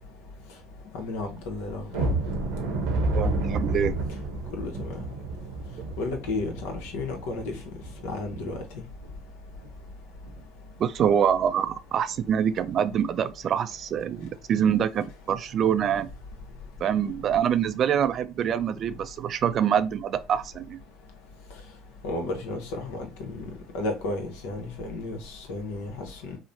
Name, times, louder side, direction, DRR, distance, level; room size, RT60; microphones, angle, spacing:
voice 1, 0.9-2.1 4.6-4.9 6.0-7.5 8.0-8.6 22.0-23.4 23.7-26.4, left 2 dB, 80° left, 0.8 m, -33 dB
sound 1, 1.9-8.7 9.0-9.2 9.6-9.8 10.2-10.4, right 2 dB, 85° right, 0.8 m, -30 dB
voice 2, 3.1-3.9 10.8-16.1 16.8-20.8, right 8 dB, 50° right, 0.3 m, -25 dB
3.1 x 2.0 x 2.6 m
supercardioid pair, 80°, 0 cm